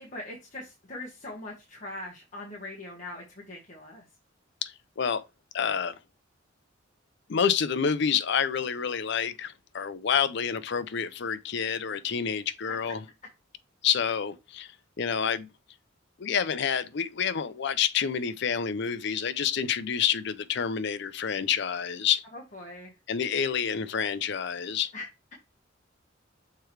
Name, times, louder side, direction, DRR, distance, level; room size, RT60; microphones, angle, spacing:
voice 1, 0.0-4.0 22.3-22.9 24.9-25.1, left 2 dB, 40° left, 1.4 m, -41 dB
voice 2, 4.6-5.2 5.5-6.0 7.3-13.0 13.8-15.5 16.2-22.2 23.1-24.9, left 7 dB, 60° left, 0.5 m, -28 dB
6.7 x 4.6 x 3.2 m
head